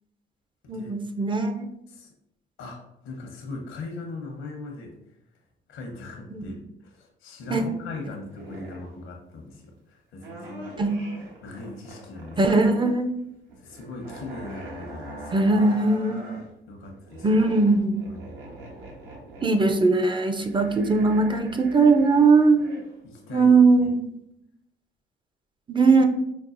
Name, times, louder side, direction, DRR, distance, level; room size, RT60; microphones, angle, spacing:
voice 1, 0.7-1.7 6.3-6.4 7.5-7.6 10.8-11.0 12.4-13.1 15.3-16.3 17.2-18.0 19.4-22.6 23.3-24.1 25.7-26.1, right 3 dB, 25° right, 6 dB, 0.4 m, -20 dB
voice 2, 2.6-4.9 5.7-6.6 6.8-9.6 10.1-10.7 11.4-12.4 13.6-15.5 16.7-17.3 18.2-18.4 23.0-23.9, left 3 dB, 80° left, 2 dB, 0.9 m, -39 dB
sound 1, 7.4-8.0 8.3-8.9 10.2-13.0 13.2-16.4 16.8-22.9 23.3-23.4, right 1 dB, 85° right, 1.1 m, -42 dB
5.3 x 2.3 x 2.5 m, 0.80 s
cardioid pair, 90°, 20 cm